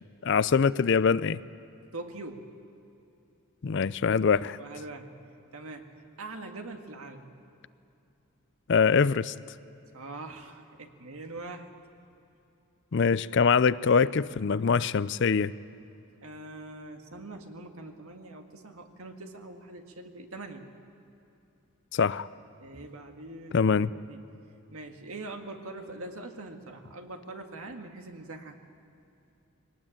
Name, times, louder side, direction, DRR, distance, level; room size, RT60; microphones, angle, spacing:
voice 1, 0.2-1.4 3.6-4.6 8.7-9.3 12.9-15.5 21.9-22.3 23.5-23.9, left 5 dB, 50° left, 17 dB, 0.4 m, -23 dB
voice 2, 1.9-2.5 4.6-5.1 5.5-5.9 6.2-7.3 9.9-11.7 16.2-20.6 22.6-24.2 24.7-28.6, right 2 dB, 70° right, 4 dB, 1.9 m, -43 dB
22.5 x 18.5 x 8.8 m, 2.8 s
head